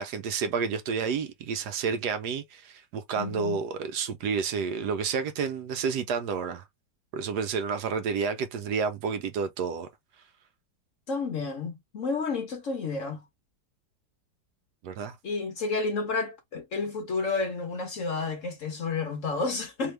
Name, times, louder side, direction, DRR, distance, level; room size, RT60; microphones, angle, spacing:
voice 1, 0.0-6.6 7.1-9.9 14.8-15.2, right 6 dB, 70° right, 1.1 m, -30 dB
voice 2, 3.2-3.6 11.1-13.2 15.2-19.9, left 4 dB, 55° left, 0.9 m, -31 dB
3.5 x 2.9 x 3.2 m
omnidirectional pair, 2.0 m